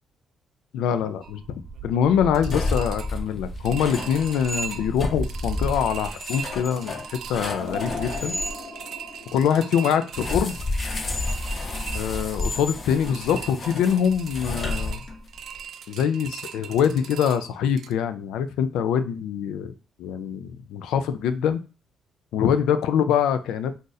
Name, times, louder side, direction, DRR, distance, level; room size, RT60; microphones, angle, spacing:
voice 1, 0.7-8.3 9.3-10.6 11.9-15.0 15.9-19.7 20.0-21.6 22.3-23.7, left 8 dB, 90° left, 10 dB, 0.3 m, -24 dB
sound 1, 1.2-17.9, right 7 dB, 70° right, 0.3 m, -39 dB
sound 2, 2.1-8.5 10.1-15.4, left 2 dB, 35° left, 0.6 m, -31 dB
sound 3, 7.6-10.7 11.2-11.3 12.3-12.4, left 4 dB, 70° left, 1.0 m, -38 dB
2.5 x 2.5 x 3.9 m, 0.33 s
cardioid pair, 90°, 0 cm